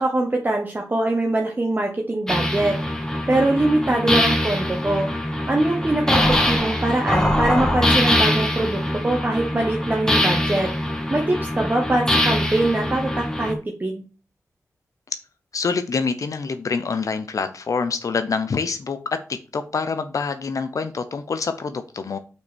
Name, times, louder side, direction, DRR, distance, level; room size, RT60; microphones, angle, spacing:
voice 1, 0.0-2.8 3.3-5.1 5.5-10.7 11.1-14.0, right 2 dB, 30° right, 1.3 m, -23 dB
sound 1, 2.3-13.5, left 1 dB, 10° left, 1.6 m, -23 dB
voice 2, 15.5-19.0 19.3-22.2, left 5 dB, 70° left, 0.7 m, -26 dB
5.8 x 4.6 x 6.2 m
cardioid pair, 55°, 6 cm